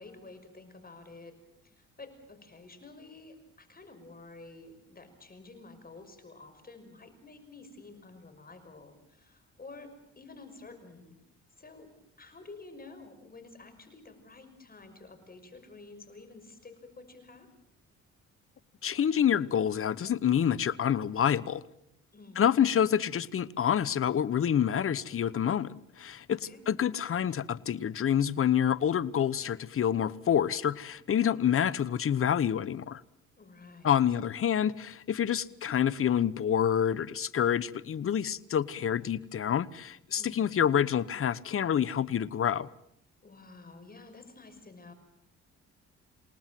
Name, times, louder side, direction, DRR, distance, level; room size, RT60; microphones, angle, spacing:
voice 1, 0.0-1.4 1.6-9.9 10.2-11.2 11.6-11.9 12.2-17.5 22.1-22.4 26.3-26.6 33.4-34.0 40.2-40.6 43.2-44.9, left 3 dB, 30° left, 5.6 m, -50 dB
voice 2, 18.8-21.6 22.4-26.4 26.7-33.0 33.8-42.7, left 9 dB, 45° left, 1.0 m, -27 dB
28.5 x 19.0 x 7.6 m
cardioid pair, 90°, 30 cm